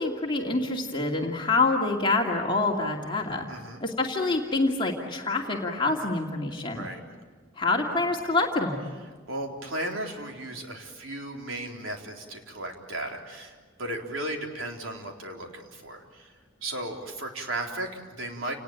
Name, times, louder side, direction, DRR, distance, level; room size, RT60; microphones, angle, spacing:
voice 1, 0.0-3.5 3.8-6.8 7.6-8.8, left 3 dB, 25° left, 0 dB, 2.5 m, -26 dB
voice 2, 3.5-3.8 6.7-7.0 9.3-16.3 16.6-18.6, right 1 dB, 75° right, 2 dB, 3.9 m, -35 dB
29.0 x 19.5 x 9.1 m, 1.5 s
head